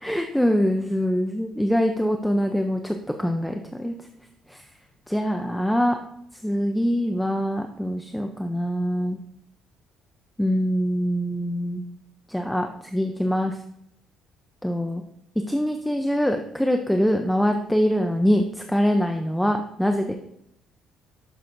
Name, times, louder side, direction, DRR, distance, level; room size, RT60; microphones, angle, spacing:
voice 1, 0.0-3.9 4.5-4.6 5.1-6.0 6.4-9.2 10.4-11.8 12.3-13.6 14.6-15.0 15.5-20.1, equal, ahead, 4 dB, 0.4 m, -24 dB
11.0 x 6.1 x 2.5 m, 0.76 s
cardioid pair, 160°, 0 cm